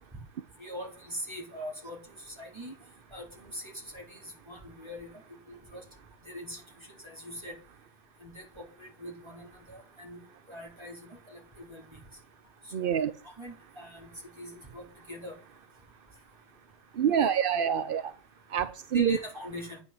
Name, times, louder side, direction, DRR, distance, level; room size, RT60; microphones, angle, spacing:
voice 1, 0.6-2.0 2.3-2.7 3.1-5.1 5.5-5.8 6.2-6.6 7.0-7.5 8.2-10.2 10.5-11.8 12.8-12.9 13.2-14.1 14.4-15.3 17.0-17.3 18.9-19.8, equal, 15° right, -1 dB, 4.3 m, -42 dB
voice 2, 12.7-13.1 17.0-18.0 18.5-19.2, right 8 dB, 55° right, 12 dB, 0.6 m, -26 dB
9.7 x 6.3 x 7.7 m, 0.37 s
omnidirectional pair, 1.7 m